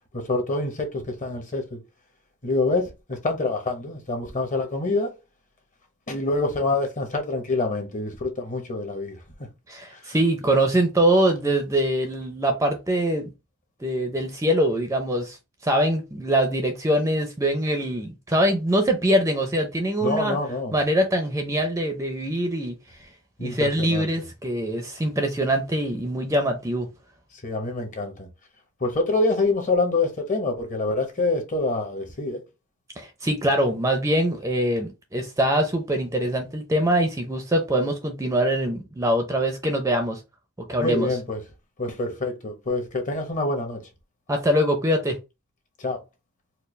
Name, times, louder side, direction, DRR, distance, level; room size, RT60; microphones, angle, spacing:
voice 1, 0.1-1.8 2.4-5.1 6.1-9.2 10.1-10.2 20.0-20.8 23.4-24.1 27.4-28.3 28.8-32.4 40.8-41.4 41.8-43.8 45.8-46.0, left 2 dB, 35° left, 1.0 m, -26 dB
voice 2, 9.7-13.3 13.8-15.4 15.6-20.4 20.7-22.7 23.4-26.9 33.0-40.2 40.7-41.2 44.3-45.2, right 1 dB, 15° right, 0.5 m, -23 dB
4.5 x 2.0 x 3.2 m
head